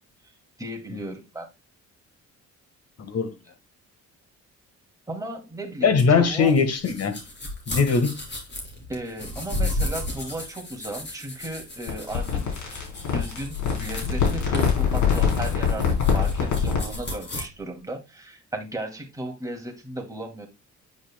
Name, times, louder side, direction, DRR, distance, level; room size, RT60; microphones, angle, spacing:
voice 1, 0.6-1.5 5.1-6.6 8.9-12.9 13.1-20.5, right 1 dB, 10° right, 2.4 m, -35 dB
voice 2, 5.8-7.2 7.7-8.2, left 5 dB, 55° left, 1.6 m, -21 dB
sound 1, 6.0-17.4, left 2 dB, 35° left, 3.9 m, -34 dB
sound 2, 11.9-17.0, left 7 dB, 75° left, 3.7 m, -24 dB
9.4 x 6.2 x 2.2 m
cardioid pair, 90°, 30 cm